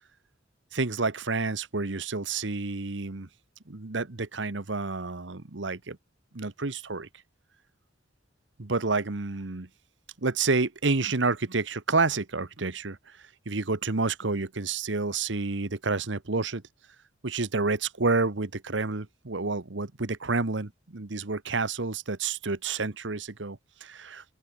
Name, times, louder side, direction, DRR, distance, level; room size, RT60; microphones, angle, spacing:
voice 1, 0.7-3.3 3.7-6.0 6.3-7.1 8.6-9.7 10.2-13.0 13.4-16.6 17.2-24.2, right 3 dB, 75° right, 1.3 m, -29 dB
open air
head